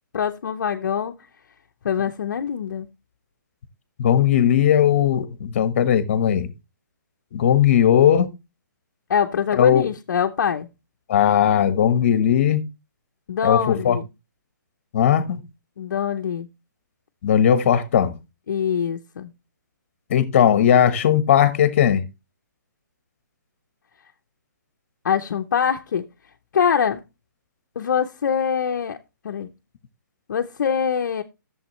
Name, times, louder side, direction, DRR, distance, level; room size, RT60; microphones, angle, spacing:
voice 1, 0.1-1.2 1.8-2.9 9.1-10.7 13.3-14.1 15.8-16.5 18.5-19.3 25.0-26.1 26.5-27.0 27.8-29.0 29.2-29.5 30.3-31.2, left 7 dB, 60° left, 0.8 m, -23 dB
voice 2, 4.0-6.5 7.3-8.3 9.6-9.9 11.1-12.6 13.4-14.0 14.9-15.4 17.2-18.1 20.1-22.0, left 9 dB, 40° left, 1.2 m, -18 dB
11.5 x 7.2 x 3.1 m
hypercardioid pair, 165°, 10 cm